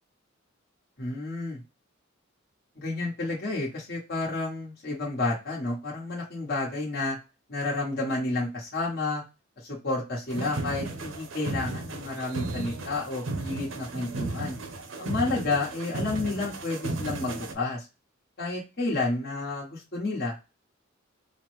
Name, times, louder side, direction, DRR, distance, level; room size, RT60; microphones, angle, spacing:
voice 1, 1.0-1.6 2.7-7.2 7.5-9.2 9.6-14.6 15.0-17.9 18.4-20.3, left 2 dB, 50° left, -4 dB, 1.2 m, -30 dB
sound 1, 10.3-17.5, right 2 dB, 80° right, 0.7 m, -34 dB
4.9 x 2.1 x 3.1 m, 0.28 s
head